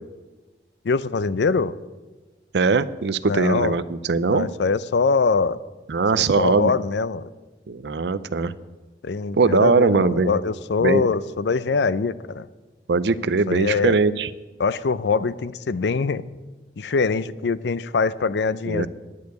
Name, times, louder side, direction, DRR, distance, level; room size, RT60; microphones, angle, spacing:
voice 1, 0.8-1.7 3.2-3.8 4.3-5.6 6.1-7.3 9.0-12.5 13.5-14.0 14.6-16.2 16.8-18.9, left 4 dB, 80° left, 17 dB, 0.5 m, -23 dB
voice 2, 2.5-4.5 5.9-6.7 7.7-8.5 9.3-10.4 10.8-11.0 12.9-14.3 18.7-18.9, right 4 dB, 75° right, 16 dB, 0.5 m, -20 dB
11.0 x 6.6 x 9.4 m, 1.2 s
head